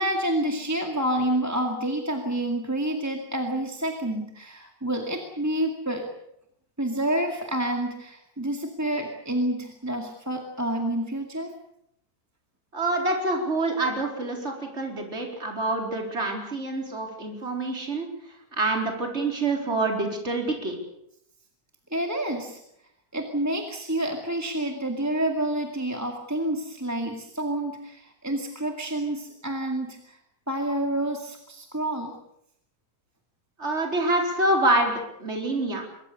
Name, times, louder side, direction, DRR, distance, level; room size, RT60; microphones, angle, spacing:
voice 1, 0.0-6.1 6.8-11.5 21.9-22.6 23.1-30.2 30.5-32.2, right 1 dB, 10° right, 2 dB, 2.1 m, -28 dB
voice 2, 12.7-18.1 18.6-20.7 33.6-34.9 35.2-35.9, right 2 dB, 40° right, 2 dB, 4.5 m, -26 dB
25.0 x 22.5 x 6.8 m, 0.77 s
omnidirectional pair, 1.8 m